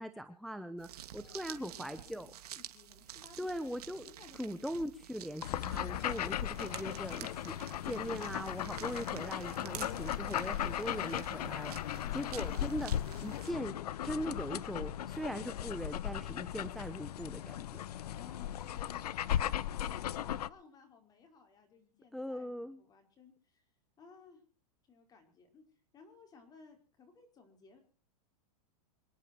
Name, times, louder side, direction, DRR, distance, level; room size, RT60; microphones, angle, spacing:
voice 1, 0.0-2.3 3.4-4.1 4.3-11.7 12.1-13.8 14.0-17.8 22.1-22.8, equal, ahead, 10 dB, 0.9 m, -40 dB
sound 1, 0.8-13.5, right 11 dB, 80° right, 2.6 m, -50 dB
voice 2, 1.1-3.6 4.0-4.8 11.8-12.2 17.8-19.0 19.3-23.6 24.0-24.4 24.9-25.6 25.9-27.8, left 5 dB, 20° left, 4 dB, 4.8 m, -59 dB
sound 2, 5.4-20.5, left 11 dB, 90° left, 0.8 m, -37 dB
26.0 x 10.5 x 4.5 m, 0.39 s
supercardioid pair, 155°, 20 cm